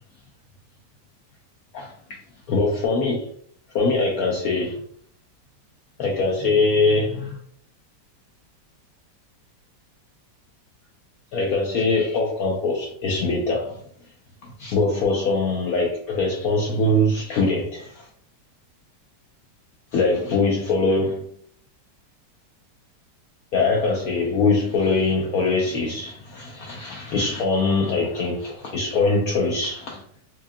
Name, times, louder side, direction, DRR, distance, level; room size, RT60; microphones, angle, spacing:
voice 1, 1.7-2.2 2.5-3.3 3.7-4.8 6.0-7.4 11.3-13.8 14.4-18.1 19.9-21.2 23.5-30.0, left 3 dB, 70° left, 0.9 m, -22 dB
4.5 x 2.4 x 2.6 m
omnidirectional pair, 1.9 m